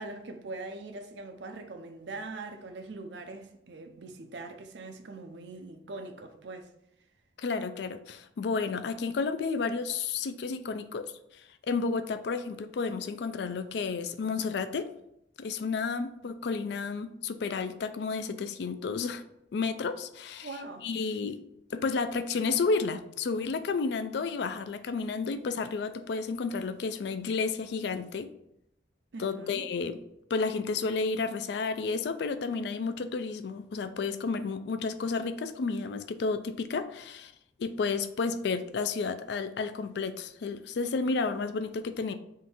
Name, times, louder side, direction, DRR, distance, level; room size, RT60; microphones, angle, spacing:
voice 1, 0.0-6.7 20.4-21.3 29.1-29.7, right 3 dB, 75° right, 0.5 m, -42 dB
voice 2, 7.4-11.1 11.6-14.9 15.4-19.2 19.5-20.5 20.8-21.4 21.7-28.3 29.2-30.0 30.3-37.3 37.6-42.1, left 4 dB, 65° left, 0.3 m, -31 dB
3.7 x 2.6 x 4.2 m
head